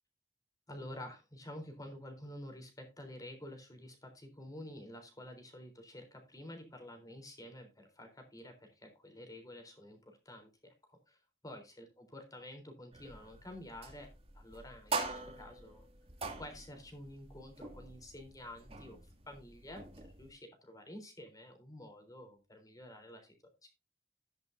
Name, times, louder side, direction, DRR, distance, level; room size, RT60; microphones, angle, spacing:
voice 1, 0.7-14.1 14.3-15.9 16.4-19.0 19.3-23.4 23.6-23.7, left 1 dB, 20° left, 5 dB, 3.8 m, -50 dB
sound 1, 12.9-20.3, right 3 dB, 35° right, 2.3 m, -44 dB
13.0 x 10.5 x 2.7 m, 0.27 s
head